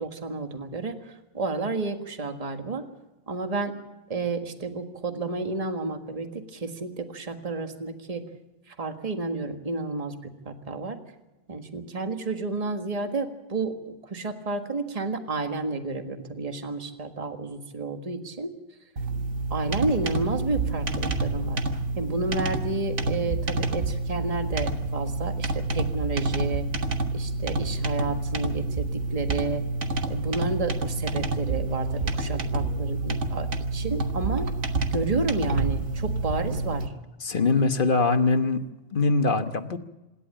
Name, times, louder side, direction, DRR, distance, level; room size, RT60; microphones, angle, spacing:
voice 1, 0.0-2.9 3.3-3.7 4.1-8.2 8.7-11.0 11.5-18.5 19.5-21.6 22.0-26.7 27.1-29.6 30.1-34.5 34.9-36.9, right 3 dB, 30° right, 6 dB, 1.7 m, -31 dB
sound 1, 19.0-36.9, right 2 dB, 60° right, 1.7 m, -28 dB
voice 2, 37.2-38.6 38.9-39.8, left 3 dB, 40° left, 8 dB, 1.3 m, -22 dB
26.5 x 11.5 x 8.9 m, 1.1 s
omnidirectional pair, 1.4 m